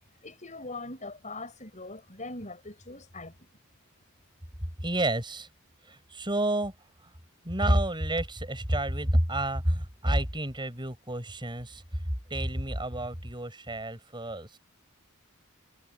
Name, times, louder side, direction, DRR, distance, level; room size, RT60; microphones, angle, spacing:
voice 1, 0.2-3.3, left 2 dB, 35° left, 7.8 m, -41 dB
voice 2, 4.8-5.5 5.8-6.7 7.0-7.1 7.4-12.0 12.3-14.6, right 1 dB, 20° right, 7.6 m, -29 dB
head